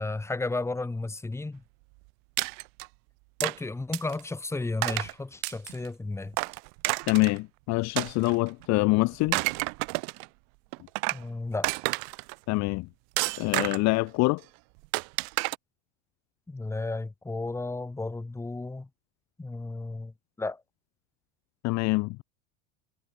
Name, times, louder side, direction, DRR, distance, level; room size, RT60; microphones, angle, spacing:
voice 1, 0.0-1.6 3.4-6.4 11.1-11.7 16.5-18.9 19.4-20.6, left 3 dB, 5° left, 1.7 m, -33 dB
sound 1, 2.4-2.9 3.4-3.6 3.9-4.2 4.8-5.1 5.4-5.9 6.3-7.4 8.0-8.7 9.1-10.3 10.7-11.2 11.6-12.3 13.2-13.9 14.9-15.6, right 40 dB or more, 65° right, 4.1 m, -30 dB
voice 2, 7.1-9.4 12.5-12.9 13.4-14.4 21.6-22.2, left 23 dB, 45° left, 0.7 m, -25 dB
cardioid pair, 150°, 38 cm